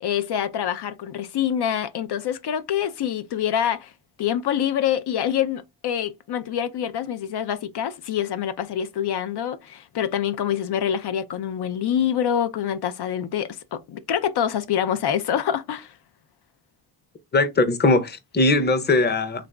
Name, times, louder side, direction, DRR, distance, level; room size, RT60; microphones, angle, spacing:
voice 1, 0.0-3.9 4.2-15.9, left 9 dB, 85° left, 0.6 m, -26 dB
voice 2, 17.3-19.5, left 2 dB, 25° left, 0.6 m, -20 dB
3.9 x 2.5 x 3.3 m
wide cardioid pair, 125°, 38 cm